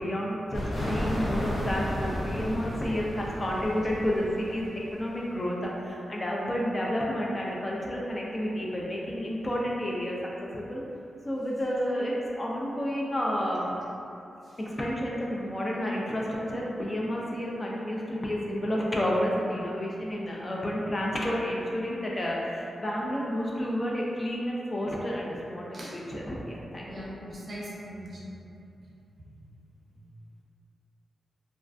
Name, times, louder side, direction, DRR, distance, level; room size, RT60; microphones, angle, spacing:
voice 1, 0.0-10.8 11.2-13.7 14.6-25.6 25.9-27.0, equal, 30° left, -4 dB, 0.3 m, -30 dB
sound 1, 0.5-5.2, equal, 65° left, 0.7 m, -33 dB
voice 2, 26.8-28.4 29.2-29.3, equal, 45° right, -6 dB, 0.5 m, -40 dB
2.3 x 2.2 x 2.4 m, 2.7 s
wide cardioid pair, 100°, 0 cm